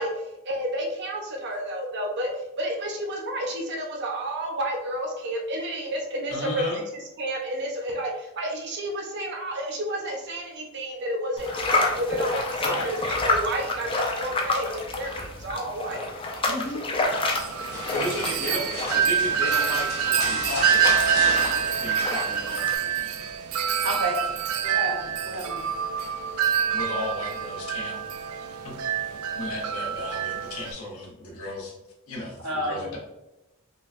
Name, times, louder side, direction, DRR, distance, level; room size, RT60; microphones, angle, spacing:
voice 1, 0.0-6.8 7.2-16.0 16.6-16.7, right 1 dB, 50° right, 0 dB, 0.7 m, -31 dB
voice 2, 6.3-6.8 12.6-12.9 16.5-16.8 17.9-21.5 21.8-23.2 26.7-28.0 28.6-31.7 32.1-33.0, left 1 dB, 70° left, -1 dB, 1.0 m, -34 dB
sound 1, 11.4-22.8, left 2 dB, 25° left, 0.4 m, -29 dB
Wind chime, 17.3-30.7, right 8 dB, 65° right, 0.3 m, -26 dB
sound 2, 17.7-22.7 23.0-23.4 23.8-24.8 26.0-26.4 26.9-27.1, left 2 dB, 45° left, 0.9 m, -36 dB
voice 3, 23.8-24.2 24.6-25.6 32.4-32.9, right 1 dB, 85° right, -3 dB, 0.9 m, -30 dB
5.1 x 2.2 x 2.5 m, 0.93 s
head